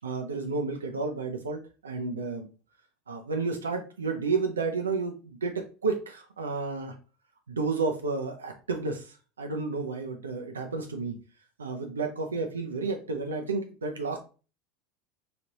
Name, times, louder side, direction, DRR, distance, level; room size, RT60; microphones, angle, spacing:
voice 1, 0.0-2.5 3.1-6.9 7.5-11.2 11.6-14.2, right 4 dB, 75° right, 4 dB, 0.4 m, -31 dB
3.2 x 2.4 x 2.8 m, 0.36 s
figure-of-eight pair, 75°, 0 cm